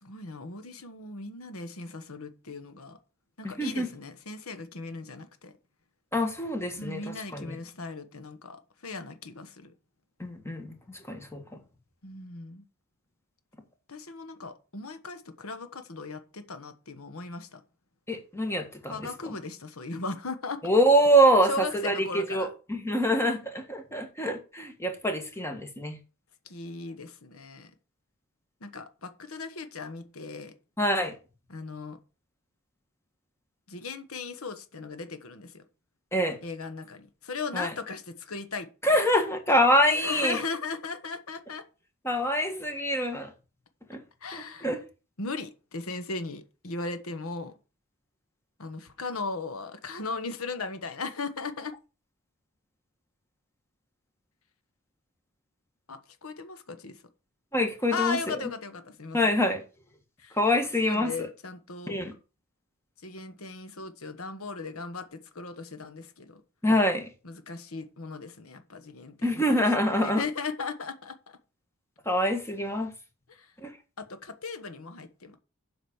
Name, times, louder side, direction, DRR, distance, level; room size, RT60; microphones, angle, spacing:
voice 1, 0.0-3.0 3.4-5.5 6.8-9.7 12.0-12.6 13.9-17.6 18.9-20.6 21.4-22.5 26.4-27.7 28.6-30.5 31.5-32.0 33.7-35.6 36.4-38.7 39.9-41.6 44.2-44.8 45.2-47.6 48.6-51.7 55.9-57.0 57.9-59.2 60.2-60.4 60.8-62.0 63.0-66.4 67.2-69.6 70.0-71.4 73.3-73.5 74.0-75.4, left 4 dB, 75° left, 1.3 m, -37 dB
voice 2, 3.4-3.9 6.1-7.0 7.3-7.5 10.2-10.7 11.1-11.4 18.1-19.0 19.3-19.4 20.6-26.0 30.8-31.1 36.1-36.4 37.5-37.7 38.8-40.4 42.0-43.3 43.9-44.0 44.3-44.8 57.5-58.2 59.1-59.6 60.4-61.1 61.9-62.1 66.6-67.1 69.2-70.2 72.0-72.9 73.6-73.7, equal, 10° left, 1.6 m, -25 dB
7.8 x 5.1 x 7.1 m
head